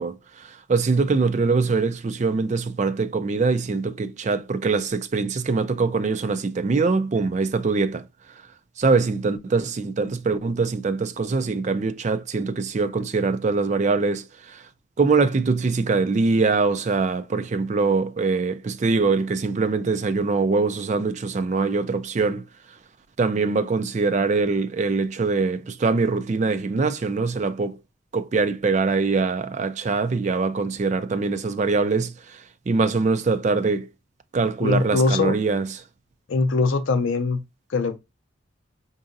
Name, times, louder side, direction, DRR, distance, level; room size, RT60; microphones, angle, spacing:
voice 1, 0.0-8.0 8.8-14.6 15.0-22.4 23.2-27.8 28.1-33.9 34.3-35.7, right 4 dB, 35° right, 0.3 m, -23 dB
voice 2, 34.6-35.3 36.3-37.4 37.7-38.0, left 4 dB, 70° left, 0.4 m, -22 dB
4.8 x 2.7 x 2.5 m
head